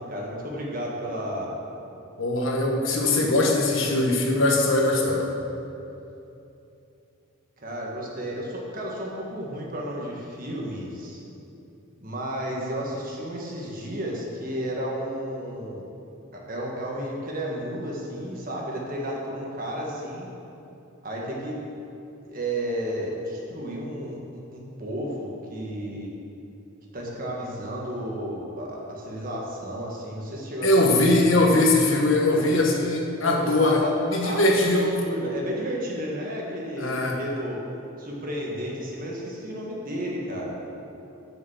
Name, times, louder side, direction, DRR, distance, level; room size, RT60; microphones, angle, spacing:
voice 1, 0.0-1.5 7.6-11.2 12.0-15.9 16.3-20.3 21.0-21.6 22.3-26.1 26.9-30.7 33.2-33.9 34.2-34.6 35.0-37.6 38.0-40.6, equal, 40° right, -3 dB, 1.6 m, -32 dB
voice 2, 2.2-5.3 30.6-34.9 36.8-37.2, left 2 dB, 65° left, 0 dB, 1.3 m, -21 dB
7.1 x 6.6 x 7.4 m, 2.8 s
head